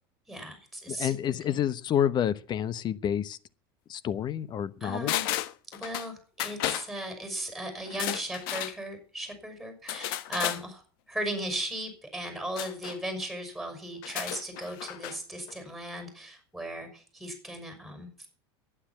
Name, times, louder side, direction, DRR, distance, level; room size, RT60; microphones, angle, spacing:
voice 1, 0.3-1.2 1.4-1.6 4.8-5.3 5.7-10.8 11.1-18.3, right 1 dB, ahead, 6.1 m, -37 dB
voice 2, 0.9-3.4 3.9-5.1, left 9 dB, 35° left, 1.0 m, -29 dB
sound 1, 5.1-6.1 6.4-6.9 7.9-8.8 9.9-10.6 12.6-13.0 14.0-15.2 15.5-15.6, left 14 dB, 65° left, 1.0 m, -33 dB
11.5 x 10.0 x 8.7 m
supercardioid pair, 105°, 12 cm